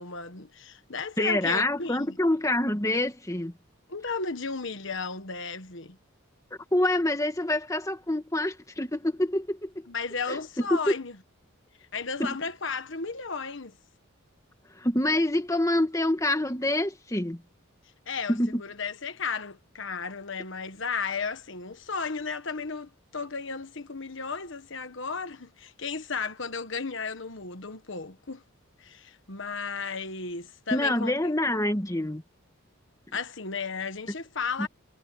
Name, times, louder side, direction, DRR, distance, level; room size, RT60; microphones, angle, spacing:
voice 1, 0.0-2.2 3.9-6.0 9.9-11.2 11.9-13.7 18.1-28.4 28.8-31.6 33.1-34.7, left 5 dB, 60° left, 1.4 m, -34 dB
voice 2, 1.2-3.5 6.7-9.7 10.3-10.4 10.7-10.9 12.2-12.4 14.8-17.4 18.3-18.6 30.7-32.2, left 1 dB, 15° left, 1.6 m, -26 dB
head